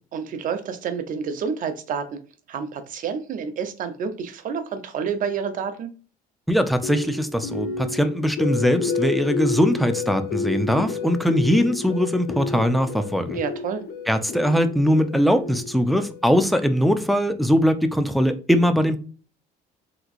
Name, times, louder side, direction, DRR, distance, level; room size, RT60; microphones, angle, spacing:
voice 1, 0.1-2.2 2.5-5.9 13.3-13.8, right 6 dB, 50° right, 0.6 m, -29 dB
voice 2, 6.5-13.4 14.1-19.0, equal, ahead, 0.4 m, -21 dB
sound 1, 6.8-16.9, left 4 dB, 75° left, 0.6 m, -31 dB
3.4 x 3.0 x 2.4 m
cardioid pair, 110°, 17 cm